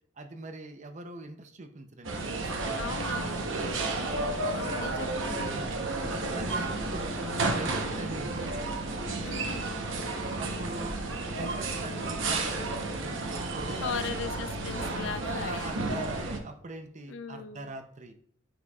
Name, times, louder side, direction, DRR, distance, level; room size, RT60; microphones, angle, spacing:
voice 1, 0.2-2.8 3.1-4.1 5.5-8.7 10.4-14.2 15.2-18.2, right 2 dB, 40° right, 7 dB, 0.6 m, -42 dB
sound 1, 2.0-16.4, right 2 dB, 85° right, 0.9 m, -32 dB
voice 2, 2.8-3.5 4.5-5.8 9.2-9.6 13.7-15.7 17.1-17.7, left 5 dB, 75° left, 11 dB, 0.5 m, -38 dB
9.3 x 4.4 x 2.3 m, 0.63 s
head